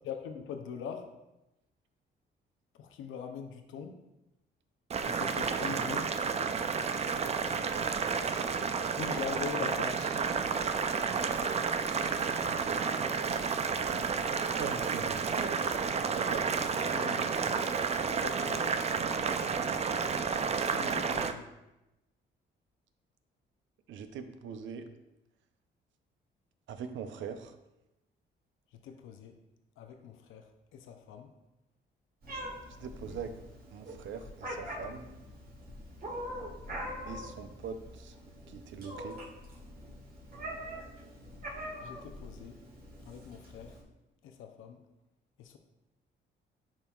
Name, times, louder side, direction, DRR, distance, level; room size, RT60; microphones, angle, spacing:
voice 1, 0.0-1.1 2.8-4.0 5.0-6.1 8.9-10.2 16.5-17.4 18.2-18.7 20.7-21.5 28.8-29.4 29.8-30.5 30.7-31.3 41.8-42.6 43.1-43.7 44.2-44.8 45.4-45.6, left 7 dB, 80° left, 6 dB, 0.7 m, -42 dB
Boiling, 4.9-21.3, right 5 dB, 35° right, 0.4 m, -31 dB
voice 2, 14.5-15.6 16.1-16.5 23.9-24.8 26.7-27.5 32.8-33.3 33.7-35.0 37.1-38.1 38.5-39.2, right 6 dB, 75° right, 8 dB, 0.6 m, -41 dB
Meow, 32.2-43.8, equal, 50° right, 2.0 m, -43 dB
10.5 x 4.4 x 2.4 m, 0.95 s
cardioid pair, 90°, 20 cm